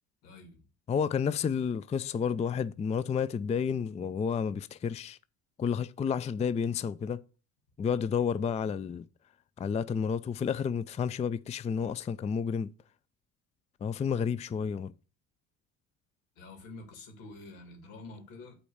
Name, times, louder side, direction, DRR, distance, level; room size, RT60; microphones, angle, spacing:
voice 1, 0.2-0.6 16.4-18.6, left 2 dB, 85° left, 2.9 m, -47 dB
voice 2, 0.9-5.2 5.6-7.2 7.8-9.0 9.6-12.7 13.8-14.9, left 6 dB, 20° left, 0.4 m, -30 dB
8.4 x 4.2 x 6.4 m
supercardioid pair, 80°, 38 cm